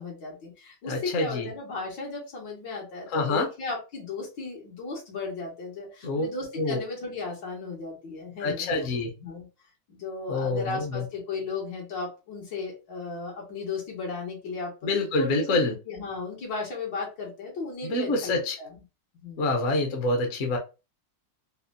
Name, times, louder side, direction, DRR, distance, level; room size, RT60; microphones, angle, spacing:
voice 1, 0.0-8.7 9.2-9.5 9.9-14.7 15.2-18.8 19.2-19.5, left 4 dB, 80° left, 2.2 m, -35 dB
voice 2, 0.8-1.5 3.1-3.5 6.0-6.2 6.6-6.8 8.4-9.1 10.3-11.0 14.8-15.7 17.8-18.5 19.4-20.6, left 2 dB, 60° left, 0.9 m, -26 dB
4.2 x 2.2 x 2.6 m
omnidirectional pair, 2.0 m